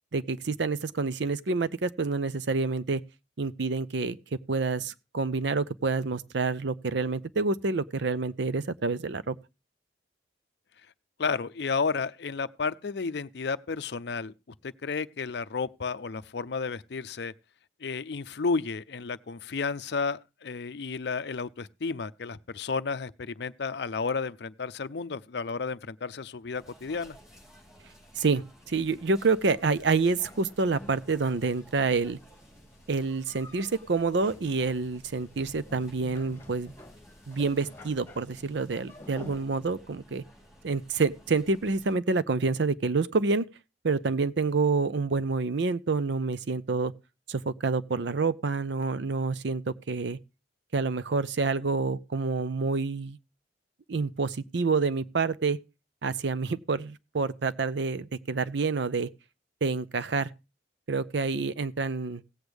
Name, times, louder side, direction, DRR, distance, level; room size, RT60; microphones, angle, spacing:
voice 1, 0.1-3.0 3.4-4.2 4.5-9.4 28.2-32.2 32.9-36.7 37.3-40.2 40.6-43.4 43.8-46.9 47.3-50.2 50.7-53.2 53.9-55.6 56.0-59.1 59.6-60.3 60.9-62.2, right 4 dB, 65° right, 0.6 m, -28 dB
voice 2, 11.2-14.3 14.6-17.3 17.8-27.2, left 4 dB, 60° left, 0.5 m, -32 dB
sound 1, 26.5-41.9, equal, 5° right, 5.6 m, -55 dB
sound 2, 29.1-39.4, left 1 dB, 10° left, 1.9 m, -51 dB
17.0 x 8.1 x 3.4 m
head